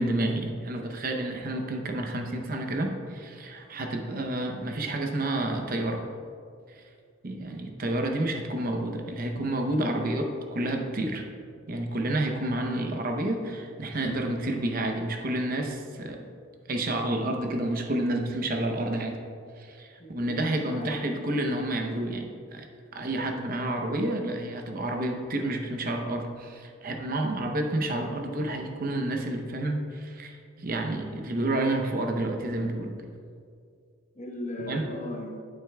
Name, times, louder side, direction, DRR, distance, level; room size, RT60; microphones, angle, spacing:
voice 1, 0.0-6.0 6.7-6.8 7.2-11.3 11.7-16.2 16.7-19.2 19.6-22.7 22.9-32.9 34.6-34.9, right 1 dB, 45° right, 3 dB, 0.7 m, -30 dB
voice 2, 7.8-8.2 9.8-10.3 20.0-20.3 20.7-21.3 34.2-35.4, left 1 dB, 35° left, 1 dB, 1.0 m, -37 dB
10.5 x 8.8 x 2.3 m, 2.3 s
head